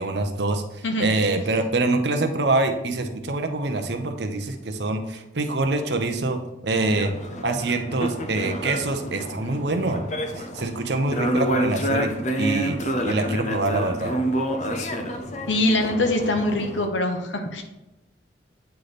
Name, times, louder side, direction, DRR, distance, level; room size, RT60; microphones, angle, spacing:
voice 1, 0.0-7.1 7.4-10.0 10.3-12.1 12.4-14.1, right 2 dB, 65° right, 6 dB, 0.7 m, -25 dB
sound 1, 6.9-16.9, equal, 40° left, 0.6 m, -28 dB
voice 2, 15.5-17.6, left 1 dB, 85° left, 5 dB, 1.0 m, -23 dB
9.0 x 3.3 x 4.1 m, 0.98 s
head